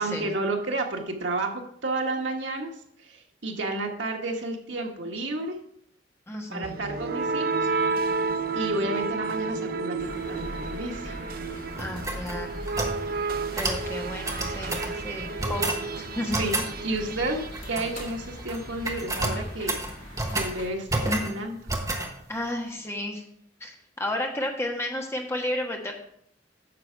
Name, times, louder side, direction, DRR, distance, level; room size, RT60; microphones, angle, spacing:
voice 1, 0.0-2.7 3.0-5.6 6.5-7.7 8.5-11.1 16.4-19.8 20.3-21.6, right 2 dB, 90° right, 2 dB, 1.5 m, -31 dB
voice 2, 6.3-6.8 11.8-12.6 13.5-15.8 16.1-16.4 22.3-23.2 23.6-25.9, left 1 dB, 15° left, 1 dB, 1.4 m, -32 dB
sound 1, 6.6-18.5, right 4 dB, 55° right, 0.6 m, -31 dB
sound 2, 10.0-20.7, left 1 dB, 45° left, 1.9 m, -41 dB
sound 3, 11.8-13.0 13.6-13.8 14.2-14.9 15.4-15.8 16.3-16.7 17.5-18.1 18.4-18.6 18.8-20.5 20.9-21.3 21.7-22.1, right 2 dB, 20° right, 1.1 m, -29 dB
9.6 x 6.8 x 4.6 m, 0.69 s
head